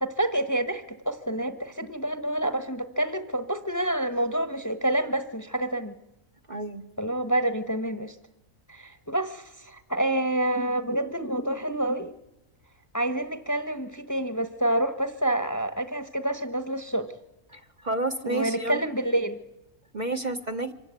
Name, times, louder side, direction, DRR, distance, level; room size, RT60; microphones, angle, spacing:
voice 1, 0.0-5.9 7.0-8.1 8.7-12.1 12.9-17.1 18.2-19.4, right 1 dB, 15° left, 9 dB, 1.1 m, -28 dB
voice 2, 6.5-6.8 17.5-18.8 19.9-20.7, right 2 dB, 35° right, 5 dB, 1.1 m, -30 dB
25.5 x 15.0 x 9.6 m, 0.96 s
omnidirectional pair, 1.4 m